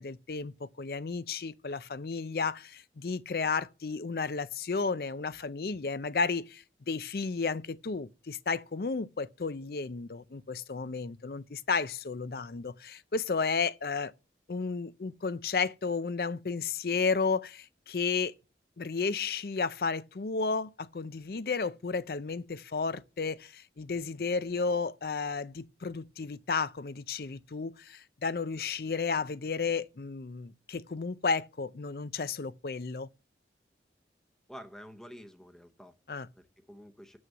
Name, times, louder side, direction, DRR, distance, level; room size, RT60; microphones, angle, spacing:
voice 1, 0.0-14.1 14.5-18.3 18.8-33.1 36.1-36.3, left 4 dB, 55° left, 0.5 m, -33 dB
voice 2, 34.5-36.0 36.3-37.2, equal, 5° left, 0.8 m, -49 dB
7.6 x 6.4 x 7.0 m
head